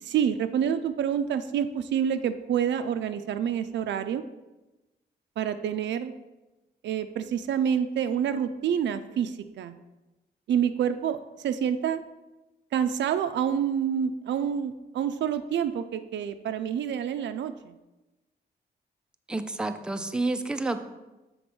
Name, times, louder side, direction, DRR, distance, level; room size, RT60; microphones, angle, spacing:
voice 1, 0.0-4.2 5.4-6.1 6.8-9.7 10.5-12.0 12.7-17.7, right 8 dB, 80° right, 10 dB, 0.4 m, -28 dB
voice 2, 19.3-20.8, right 2 dB, 5° right, 8 dB, 0.3 m, -29 dB
7.0 x 3.5 x 6.0 m, 1.0 s
wide cardioid pair, 175°, 18 cm